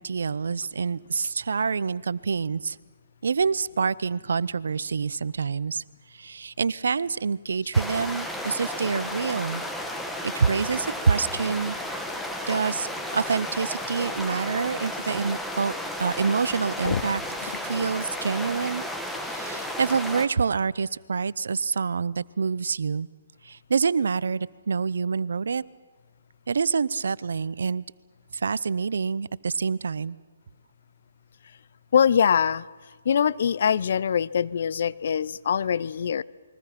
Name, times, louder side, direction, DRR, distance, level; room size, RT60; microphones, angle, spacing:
voice 1, 0.0-2.8 3.2-5.8 6.1-9.6 10.2-11.8 12.1-12.2 12.5-12.9 13.1-15.7 16.0-18.8 19.2-23.1 23.4-25.6 26.5-27.8 28.3-30.2, right 5 dB, 75° right, 20 dB, 0.7 m, -27 dB
sound 1, 7.7-20.3, left 1 dB, 5° left, 1.7 m, -33 dB
voice 2, 31.9-32.7 33.0-36.2, left 7 dB, 60° left, 19 dB, 0.7 m, -23 dB
28.5 x 22.0 x 6.0 m, 1.4 s
hypercardioid pair, 145°, 0 cm